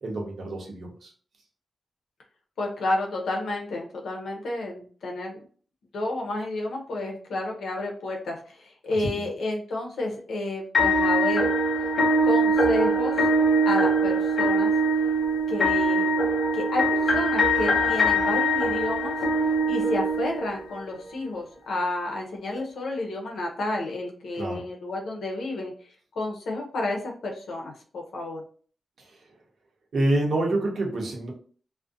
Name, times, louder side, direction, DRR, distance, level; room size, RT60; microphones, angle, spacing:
voice 1, 0.0-1.1 9.0-9.2 24.3-24.7 29.0-29.1 29.9-31.3, right 1 dB, 55° right, 0 dB, 0.7 m, -27 dB
voice 2, 2.6-5.4 5.9-11.5 12.2-13.1 13.7-14.7 15.5-16.2 16.5-19.1 19.7-25.7 26.2-28.4, left 2 dB, 90° left, 0 dB, 0.6 m, -30 dB
sound 1, 10.7-20.8, right 1 dB, 45° left, 0.5 m, -22 dB
2.4 x 2.1 x 2.5 m, 0.43 s
wide cardioid pair, 175°, 0 cm